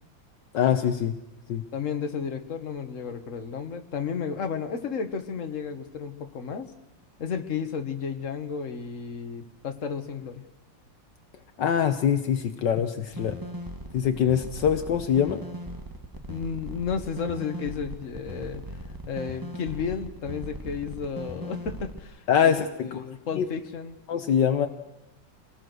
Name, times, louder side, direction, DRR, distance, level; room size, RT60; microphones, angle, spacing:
voice 1, 0.5-1.1 1.5-1.6 11.6-13.4 13.9-15.4 22.3-23.0 23.4-23.5 24.1-24.7, left 8 dB, 70° left, 8 dB, 1.5 m, -23 dB
voice 2, 1.7-6.7 7.2-10.5 16.3-18.8 19.1-24.0, left 6 dB, 45° left, 6 dB, 1.7 m, -33 dB
sound 1, 13.1-22.0, right 1 dB, 15° right, 1.2 m, -39 dB
25.5 x 19.0 x 6.3 m, 0.91 s
omnidirectional pair, 2.0 m